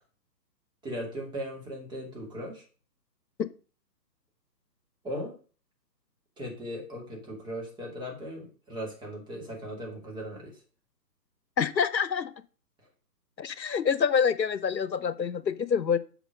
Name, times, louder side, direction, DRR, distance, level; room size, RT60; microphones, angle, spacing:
voice 1, 0.8-2.6 5.0-5.4 6.4-10.6, equal, 10° right, -1 dB, 2.5 m, -38 dB
voice 2, 11.6-12.3 13.4-16.0, left 7 dB, 90° left, 16 dB, 1.0 m, -26 dB
8.1 x 5.8 x 6.4 m, 0.38 s
figure-of-eight pair, 145°, 50 cm